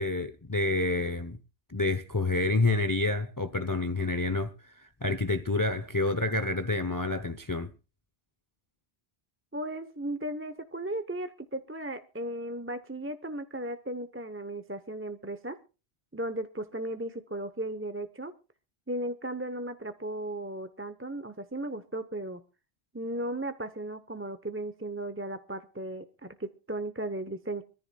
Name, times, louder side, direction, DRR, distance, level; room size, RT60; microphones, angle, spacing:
voice 1, 0.0-1.4 1.7-7.7, left 2 dB, 20° left, 0.7 m, -28 dB
voice 2, 9.5-15.6 16.1-18.3 18.9-22.4 22.9-27.6, right 1 dB, 15° right, 0.8 m, -36 dB
24.5 x 14.5 x 2.3 m
omnidirectional pair, 1.1 m